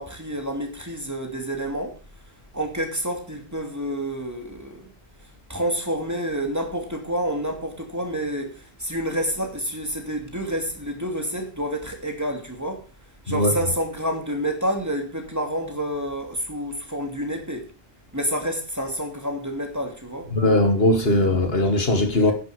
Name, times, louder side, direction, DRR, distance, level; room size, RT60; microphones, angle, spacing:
voice 1, 0.0-2.0 2.5-4.9 5.5-12.8 13.3-17.7 18.1-20.3, equal, 15° right, 2.7 m, -28 dB
voice 2, 13.3-13.7 20.3-22.3, left 1 dB, 70° left, 2.2 m, -20 dB
11.0 x 10.5 x 5.0 m
omnidirectional pair, 1.0 m